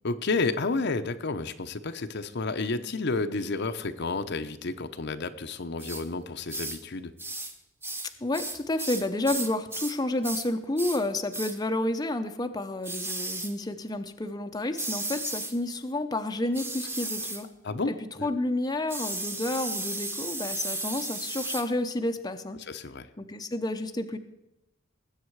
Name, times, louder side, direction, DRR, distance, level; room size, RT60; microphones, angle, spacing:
voice 1, 0.0-7.1 17.6-18.3 22.7-23.1, left 3 dB, 60° left, 9 dB, 0.8 m, -31 dB
sound 1, 5.8-6.0 6.5-6.8 7.2-7.5 7.8-10.0 10.2-10.5 10.8-11.0 11.3-11.6 12.8-13.5 14.8-15.6 16.5-17.4 18.9-21.7, right 2 dB, 10° right, 1.1 m, -34 dB
voice 2, 8.2-17.5 17.9-18.0 18.2-22.6 23.2-24.2, left 1 dB, 20° left, 6 dB, 0.7 m, -30 dB
19.5 x 8.0 x 4.7 m, 0.88 s
head